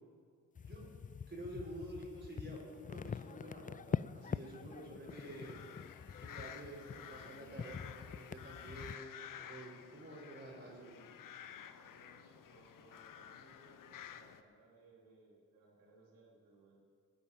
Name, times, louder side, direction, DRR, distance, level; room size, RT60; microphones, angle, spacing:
sound 1, 0.6-8.9, left 6 dB, 25° left, 0.3 m, -44 dB
voice 1, 1.3-5.8 6.2-11.1, right 1 dB, 35° right, -4 dB, 4.9 m, -49 dB
sound 2, 5.1-14.4, left 9 dB, 70° left, 0.8 m, -52 dB
voice 2, 11.3-16.8, right 3 dB, 85° right, -2 dB, 3.7 m, -64 dB
13.5 x 9.2 x 8.5 m, 2.1 s
cardioid pair, 55°, 34 cm